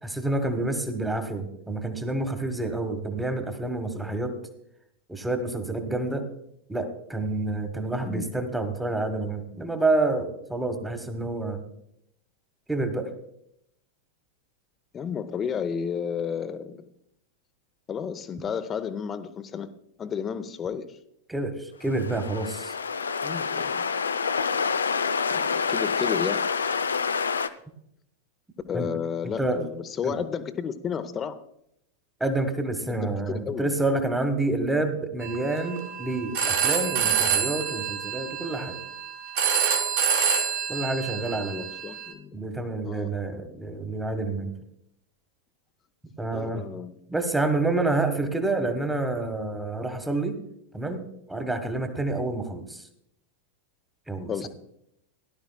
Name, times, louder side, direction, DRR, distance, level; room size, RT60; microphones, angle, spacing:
voice 1, 0.0-4.3 5.1-6.2 6.7-11.6 12.7-13.1 21.3-22.7 28.7-28.9 29.4-29.6 30.0-30.2 32.2-38.8 40.7-41.7 42.3-44.5 46.2-46.6 47.1-50.4 50.7-52.9 54.1-54.5, right 2 dB, 5° right, 8 dB, 1.4 m, -28 dB
voice 2, 14.9-16.8 17.9-19.7 20.0-21.0 23.2-23.9 25.3-26.4 28.7-31.4 32.9-33.7 41.1-42.4 42.8-43.1 46.3-46.9 54.3-54.5, left 7 dB, 25° left, 11 dB, 0.8 m, -32 dB
sound 1, 21.9-27.5, left 5 dB, 70° left, 0.4 m, -27 dB
Telephone, 35.2-42.1, right 7 dB, 55° right, 2.3 m, -27 dB
17.5 x 11.5 x 2.3 m, 0.75 s
figure-of-eight pair, 90°, 0 cm